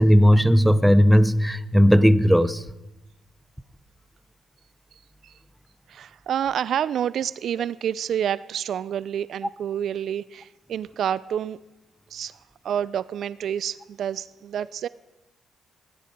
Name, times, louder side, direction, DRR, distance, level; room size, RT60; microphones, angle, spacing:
voice 1, 0.0-2.6, equal, ahead, 15 dB, 0.6 m, -16 dB
voice 2, 5.9-11.6 12.1-12.4 12.6-14.9, right 9 dB, 65° right, 19 dB, 0.3 m, -28 dB
17.0 x 10.5 x 5.2 m, 1.0 s
cardioid pair, 90°, 0 cm